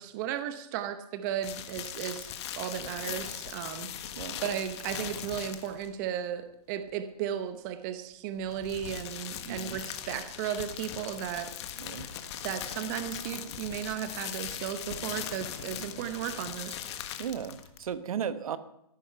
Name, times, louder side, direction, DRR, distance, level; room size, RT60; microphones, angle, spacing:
voice 1, 0.0-2.3 2.6-11.5 12.4-16.8, right 10 dB, 30° right, 10 dB, 0.8 m, -35 dB
sound 1, 1.4-5.9 8.4-17.9, left 10 dB, 45° left, 1.4 m, -40 dB
voice 2, 9.4-9.8 11.8-12.1 15.8-16.1 17.2-18.6, right 8 dB, 60° right, 12 dB, 1.0 m, -36 dB
14.5 x 12.0 x 5.6 m, 0.80 s
hypercardioid pair, 145°, 20 cm